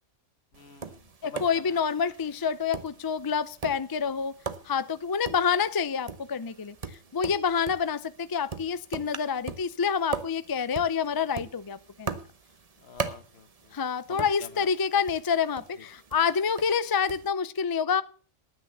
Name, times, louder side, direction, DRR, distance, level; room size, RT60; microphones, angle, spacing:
voice 1, 0.5-1.8 12.8-13.5 14.1-14.7, left 5 dB, 60° left, 1.4 m, -45 dB
Tap, 0.5-17.3, right 5 dB, 35° right, 0.9 m, -41 dB
voice 2, 1.2-4.3 4.7-6.8 7.1-12.2 13.7-18.0, left 6 dB, 40° left, 0.3 m, -27 dB
10.5 x 9.8 x 6.9 m
omnidirectional pair, 1.2 m